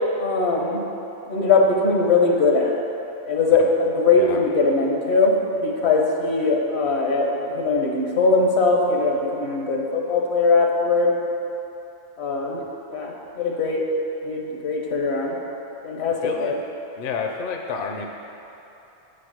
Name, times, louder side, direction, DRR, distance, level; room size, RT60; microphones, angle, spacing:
voice 1, 0.2-0.8 1.3-2.9 3.3-5.4 5.6-11.1 12.2-12.6 12.9-13.8 14.2-15.3 15.8-16.6, left 3 dB, 80° left, 0 dB, 1.3 m, -21 dB
voice 2, 16.2-16.6 17.0-18.1, left 5 dB, 60° left, 2 dB, 0.7 m, -30 dB
7.9 x 5.0 x 6.1 m, 3.0 s
omnidirectional pair, 1.1 m